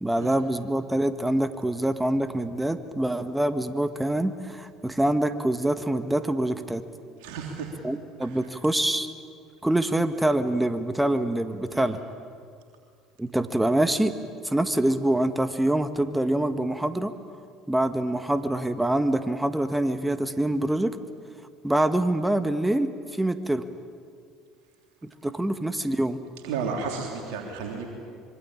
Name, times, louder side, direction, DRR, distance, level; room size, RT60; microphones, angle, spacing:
voice 1, 0.0-6.8 7.8-9.1 9.6-12.0 13.2-14.1 14.4-17.1 17.7-21.0 21.6-22.9 23.2-23.6 25.0-26.2, right 1 dB, 10° right, 10 dB, 1.8 m, -25 dB
voice 2, 7.2-7.7 8.2-8.5 11.7-11.9 26.4-27.9, right 5 dB, 70° right, 1 dB, 3.3 m, -33 dB
26.0 x 23.5 x 8.8 m, 2.2 s
hypercardioid pair, 65°, 0 cm